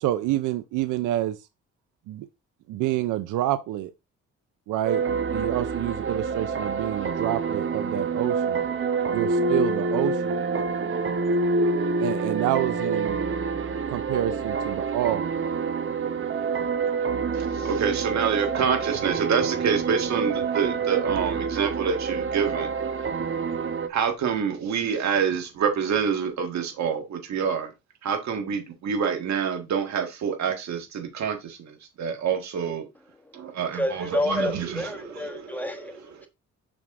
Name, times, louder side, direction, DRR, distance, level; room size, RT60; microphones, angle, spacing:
voice 1, 0.0-1.4 2.1-2.3 2.7-3.9 4.7-5.0 5.3-8.6 9.1-10.3 12.0-13.2 13.9-15.3, right 13 dB, 85° right, 0.6 m, -27 dB
sound 1, 4.8-23.9, right 4 dB, 45° right, 0.9 m, -27 dB
voice 2, 17.4-22.7 23.9-27.7 28.0-32.9 33.3-34.8 35.2-35.6 36.2-36.3, right 6 dB, 65° right, 1.6 m, -27 dB
voice 3, 33.1-36.3, left 1 dB, 5° left, 1.2 m, -30 dB
6.2 x 6.1 x 2.5 m
cardioid pair, 90°, 30 cm